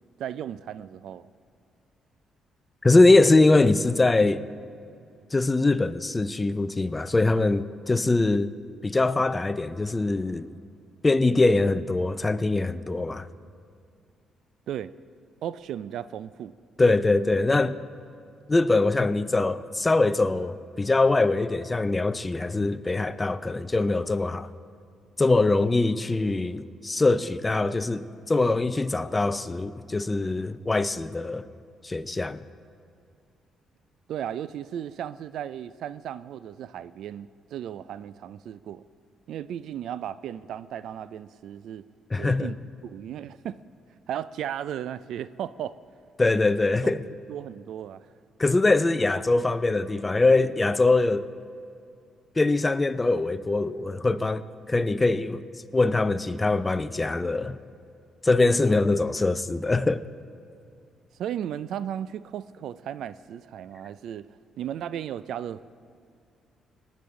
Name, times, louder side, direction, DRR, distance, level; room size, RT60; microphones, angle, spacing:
voice 1, 0.2-1.3 14.7-14.9 15.4-16.5 34.1-38.8 39.3-41.8 42.2-42.6 42.8-43.6 44.1-45.8 47.3-48.0 58.7-58.8 61.2-64.3 64.6-65.6, right 10 dB, 75° right, 0.3 m, -35 dB
voice 2, 2.8-4.4 5.3-8.5 8.8-10.5 11.0-13.3 16.8-17.8 18.5-24.5 25.2-31.5 31.8-32.4 42.1-42.5 46.2-47.0 48.4-51.2 52.4-55.4 55.7-57.6 58.2-60.0, left 2 dB, 20° left, 0.5 m, -23 dB
19.0 x 9.5 x 3.7 m
cardioid pair, 90°, 0 cm